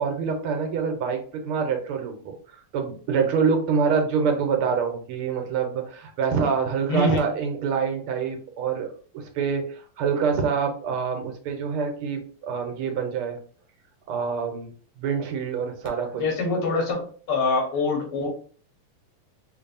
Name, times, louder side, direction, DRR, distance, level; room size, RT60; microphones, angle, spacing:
voice 1, 0.0-2.3 2.7-8.9 9.1-9.6 10.0-13.4 14.1-14.7 15.0-16.2, right 6 dB, 85° right, 4 dB, 1.7 m, -26 dB
voice 2, 6.9-7.2 16.2-18.3, left 3 dB, 90° left, 1 dB, 2.2 m, -24 dB
5.2 x 2.6 x 2.7 m, 0.44 s
omnidirectional pair, 2.4 m